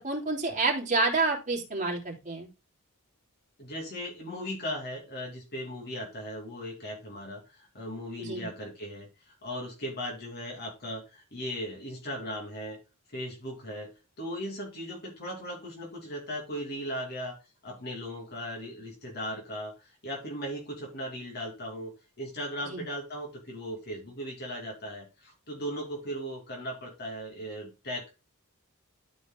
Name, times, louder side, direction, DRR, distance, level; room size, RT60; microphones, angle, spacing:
voice 1, 0.0-2.5 8.2-8.5 22.6-22.8, right 3 dB, 35° right, 0 dB, 3.2 m, -29 dB
voice 2, 3.6-12.8 13.1-13.9 14.2-17.4 17.6-28.1, equal, 45° left, 0 dB, 2.7 m, -38 dB
12.5 x 5.4 x 2.3 m, 0.29 s
head